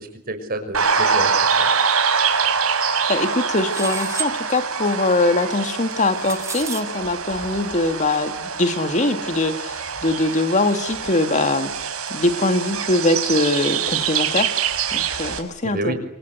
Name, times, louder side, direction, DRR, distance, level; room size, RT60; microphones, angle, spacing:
voice 1, 0.0-1.7 15.6-15.9, right 1 dB, 45° right, 8 dB, 5.9 m, -29 dB
sound 1, 0.7-15.4, right 6 dB, 90° right, 5.9 m, -24 dB
voice 2, 3.1-11.7 12.1-14.5 14.9-15.9, left 2 dB, 35° left, 8 dB, 2.2 m, -22 dB
sound 2, 3.7-4.3 5.9-6.8, right 5 dB, 15° right, 1.2 m, -31 dB
28.0 x 26.5 x 8.0 m, 0.74 s
head